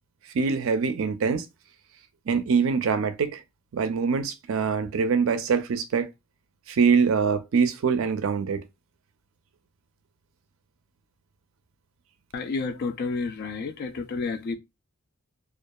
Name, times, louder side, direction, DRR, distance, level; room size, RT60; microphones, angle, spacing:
voice 1, 0.3-1.5 2.3-3.4 3.7-6.1 6.7-8.6, right 5 dB, 65° right, 0.4 m, -24 dB
voice 2, 12.3-14.6, left 4 dB, 45° left, 0.3 m, -30 dB
2.6 x 2.3 x 2.2 m
head